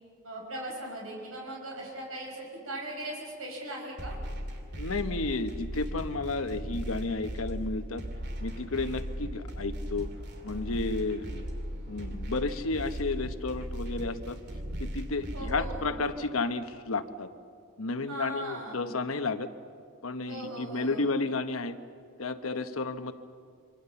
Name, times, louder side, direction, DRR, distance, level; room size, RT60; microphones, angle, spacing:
voice 1, 0.2-4.2 15.3-15.9 18.1-18.9 20.3-21.1, right 1 dB, 85° right, -1 dB, 5.9 m, -39 dB
sound 1, 4.0-16.0, equal, 50° right, 2.6 m, -37 dB
voice 2, 4.8-8.0 8.4-10.1 10.4-11.5 11.9-14.4 14.8-17.3 17.8-19.5 20.0-21.8 22.2-23.1, left 3 dB, 85° left, 9 dB, 1.1 m, -32 dB
26.0 x 24.0 x 7.0 m, 2.3 s
head